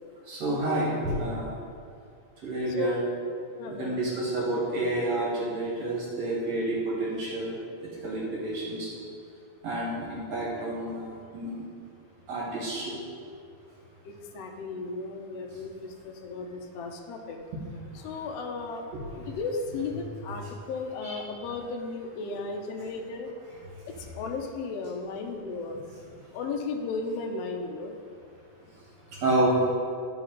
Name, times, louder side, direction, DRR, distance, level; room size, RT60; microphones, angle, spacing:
voice 1, 0.3-1.5 2.4-3.0 3.7-7.5 8.0-8.9 9.6-11.6 12.3-13.0 21.0-21.2 29.2-29.6, right 1 dB, 65° right, -5 dB, 2.5 m, -29 dB
voice 2, 2.6-3.0 3.6-4.0 14.0-17.4 18.0-18.8 19.3-23.3 24.1-25.7 26.3-27.9, left 4 dB, 75° left, 2 dB, 1.5 m, -35 dB
11.0 x 5.0 x 3.8 m, 2.2 s
omnidirectional pair, 3.4 m